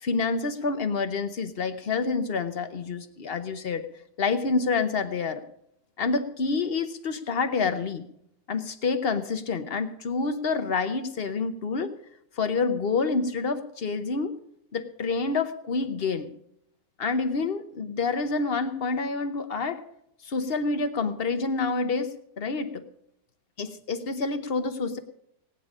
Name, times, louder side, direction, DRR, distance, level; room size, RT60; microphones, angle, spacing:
voice 1, 0.0-3.9 4.2-5.4 6.0-8.1 8.5-11.9 12.4-14.4 14.7-16.3 17.0-19.8 20.2-22.8 23.6-25.0, left 4 dB, 45° left, 9 dB, 0.9 m, -28 dB
17.5 x 9.7 x 5.0 m, 0.74 s
omnidirectional pair, 1.9 m